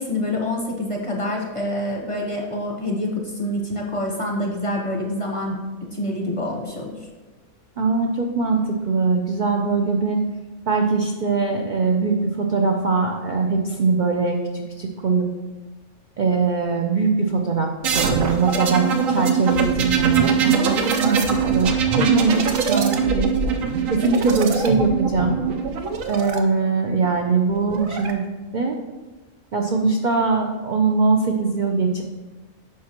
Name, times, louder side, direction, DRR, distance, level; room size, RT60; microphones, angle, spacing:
voice 1, 0.0-5.6 5.9-7.1, left 1 dB, 30° left, 0 dB, 0.8 m, -26 dB
voice 2, 7.8-10.2 10.7-15.3 16.2-23.3 23.9-25.4 26.1-28.8 29.5-32.0, right 4 dB, 55° right, 2 dB, 0.5 m, -22 dB
sound 1, 17.8-26.4 27.5-28.1, right 6 dB, 75° right, 1.1 m, -22 dB
9.4 x 5.9 x 2.9 m, 1.2 s
omnidirectional pair, 1.4 m